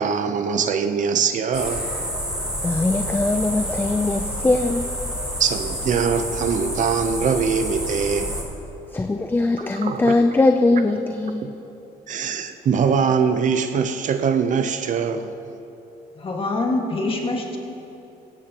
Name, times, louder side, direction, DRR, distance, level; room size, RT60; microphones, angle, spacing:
voice 1, 0.0-1.9 5.4-8.4 9.6-10.1 11.4-11.5 12.1-15.3, right 6 dB, 50° right, 8 dB, 0.7 m, -22 dB
sound 1, 1.5-8.4, equal, 5° right, 3.4 m, -29 dB
voice 2, 2.6-4.9 8.9-11.4, left 2 dB, 10° left, 6 dB, 0.5 m, -20 dB
voice 3, 16.2-17.6, left 2 dB, 30° left, 1 dB, 1.8 m, -25 dB
17.0 x 15.0 x 3.0 m, 2.9 s
cardioid pair, 110°, 17 cm